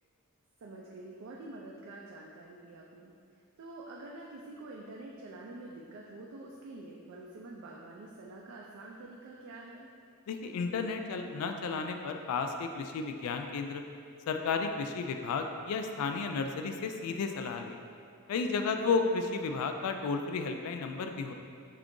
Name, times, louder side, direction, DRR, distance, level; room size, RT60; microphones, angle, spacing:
voice 1, 0.6-3.1 3.6-9.9 18.8-19.1, right 2 dB, 65° right, -3 dB, 0.3 m, -47 dB
voice 2, 10.3-13.8 14.3-17.8 18.3-21.3, left 4 dB, 85° left, 6 dB, 0.3 m, -33 dB
3.7 x 2.4 x 3.7 m, 2.3 s
head